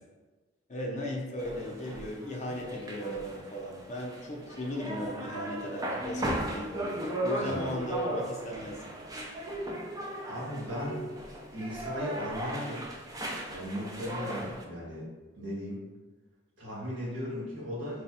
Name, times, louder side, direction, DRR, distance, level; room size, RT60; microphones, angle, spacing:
voice 1, 0.7-8.9, equal, 40° left, -1 dB, 0.6 m, -37 dB
sound 1, 1.4-14.6, right 1 dB, 20° right, 0.5 m, -37 dB
voice 2, 7.4-7.7 10.3-11.2 11.5-12.8 13.5-15.1 15.4-15.8 16.6-18.0, equal, 75° right, -6 dB, 1.3 m, -37 dB
3.3 x 2.3 x 4.1 m, 1.3 s
head